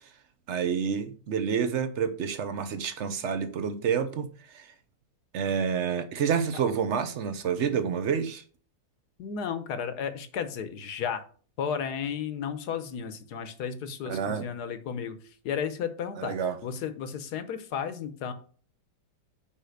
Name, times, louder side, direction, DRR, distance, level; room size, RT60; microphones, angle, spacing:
voice 1, 0.5-4.7 5.3-8.4 14.1-14.5 16.2-16.6, right 7 dB, 55° right, 0.8 m, -29 dB
voice 2, 9.2-11.2 11.6-15.2 15.4-16.4 16.6-18.3, left 7 dB, 65° left, 1.3 m, -33 dB
5.8 x 5.3 x 6.4 m
omnidirectional pair, 1.9 m